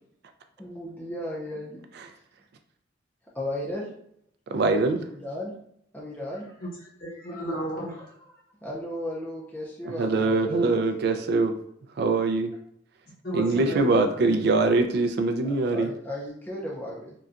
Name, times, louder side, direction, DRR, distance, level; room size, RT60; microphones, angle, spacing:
voice 1, 0.6-1.8 3.3-3.9 5.1-5.5 5.9-6.5 8.6-10.6 15.4-17.1, left 1 dB, 10° left, -4 dB, 0.4 m, -35 dB
voice 2, 4.5-5.0 10.0-11.6 12.0-12.5 13.3-15.9, right 3 dB, 55° right, 7 dB, 0.3 m, -23 dB
voice 3, 7.0-8.3 13.2-14.5, equal, 50° left, -5 dB, 1.1 m, -34 dB
3.8 x 2.2 x 2.4 m, 0.69 s
head